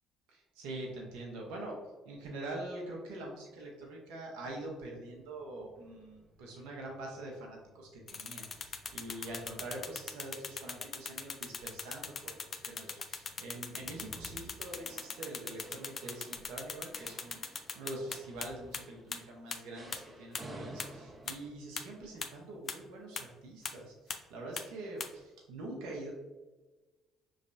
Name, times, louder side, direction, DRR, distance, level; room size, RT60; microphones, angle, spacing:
voice 1, 0.3-1.8 2.0-26.1, right 2 dB, 75° right, -1 dB, 0.8 m, -44 dB
sound 1, 4.9-21.5, right 1 dB, 25° right, 0.9 m, -55 dB
sound 2, 8.1-18.5 18.7-18.8 19.1-19.2 19.5-19.6 19.9-20.0 20.3-20.4 20.8-20.9 21.3-21.4 21.8-21.9 22.2-22.3 22.7-22.8 23.2-23.3 23.6-23.7 24.1-24.2 24.6-24.7 25.0-25.1, left 5 dB, 45° left, 0.5 m, -38 dB
5.1 x 3.2 x 2.6 m, 1.2 s
hypercardioid pair, 65°, 0 cm